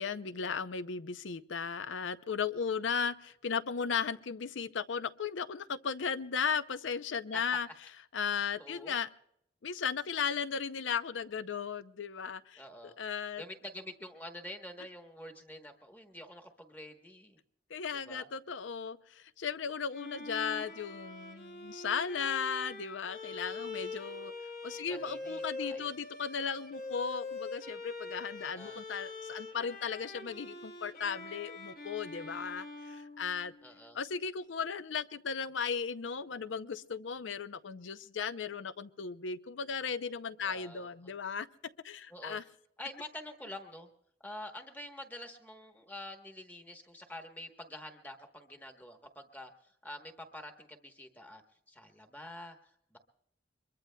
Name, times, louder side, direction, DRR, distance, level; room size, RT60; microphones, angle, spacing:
voice 1, 0.0-7.7 8.1-9.1 9.6-12.6 13.0-13.4 17.7-24.3 24.6-33.5 33.9-41.5 41.8-42.4, left 6 dB, 85° left, 14 dB, 0.6 m, -36 dB
voice 2, 8.6-9.0 12.6-13.0 13.4-17.4 18.1-18.3 24.8-25.9 28.4-28.8 32.2-32.5 33.6-34.0 40.4-41.1 42.1-42.4 42.8-43.9 44.2-51.4 51.7-53.0, left 1 dB, 10° left, 5 dB, 1.1 m, -47 dB
Bowed string instrument, 19.9-33.8, left 3 dB, 50° left, 1.3 m, -44 dB
23.5 x 22.0 x 2.2 m, 0.74 s
head